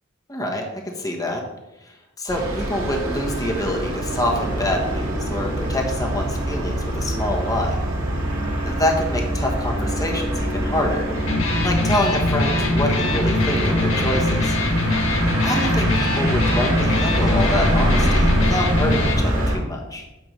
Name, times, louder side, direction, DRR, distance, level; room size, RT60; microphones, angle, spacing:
voice 1, 0.3-1.4 1.8-7.8 8.6-11.1 11.6-14.6 15.4-20.1, left 1 dB, 20° left, 0 dB, 1.2 m, -26 dB
sound 1, 2.3-19.6, equal, 85° right, 2.5 m, -24 dB
Electric guitar, 11.1-19.1, left 2 dB, 75° left, 1.2 m, -22 dB
9.2 x 3.5 x 6.6 m, 0.99 s
head